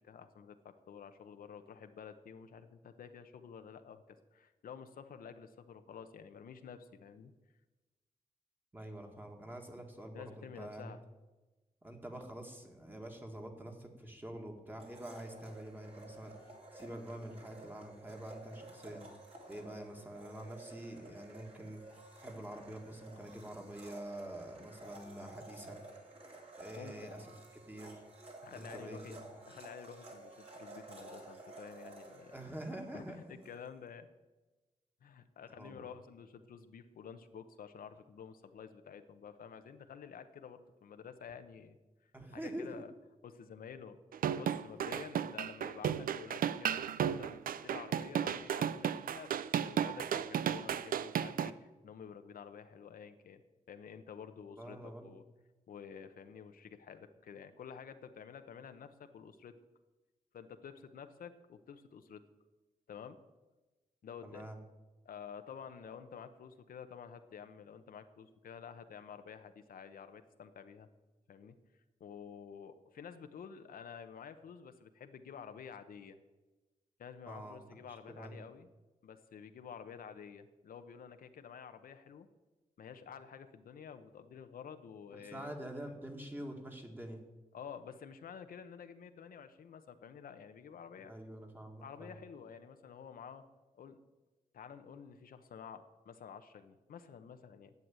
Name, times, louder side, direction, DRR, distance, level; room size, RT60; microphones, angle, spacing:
voice 1, 0.0-7.3 10.1-11.0 26.8-27.3 28.4-29.2 29.5-32.4 32.9-34.1 35.0-41.8 42.0-42.9 43.2-44.0 44.4-53.4 53.7-55.2 55.7-59.5 60.3-62.2 62.9-63.2 64.0-64.5 65.0-70.9 71.3-71.6 72.0-76.2 77.0-78.7 79.0-82.3 82.8-85.7 87.5-91.1 91.8-93.4 93.7-94.0 94.5-97.7, left 7 dB, 85° left, 9 dB, 0.9 m, -50 dB
voice 2, 8.7-11.0 11.8-19.0 19.5-21.8 22.2-25.8 26.6-27.3 27.7-28.0 28.5-29.2 32.3-33.2 35.6-35.8 42.1-42.8 54.6-55.1 64.2-64.6 77.3-77.6 77.9-78.4 85.1-87.2 91.1-92.2, right 1 dB, 15° right, 3 dB, 1.8 m, -46 dB
Domestic sounds home sounds, 14.8-33.6, right 2 dB, 45° right, 2.9 m, -53 dB
sound 1, 44.1-51.5, right 9 dB, 80° right, 0.5 m, -34 dB
11.0 x 8.0 x 8.9 m, 1.2 s
wide cardioid pair, 130°, 14 cm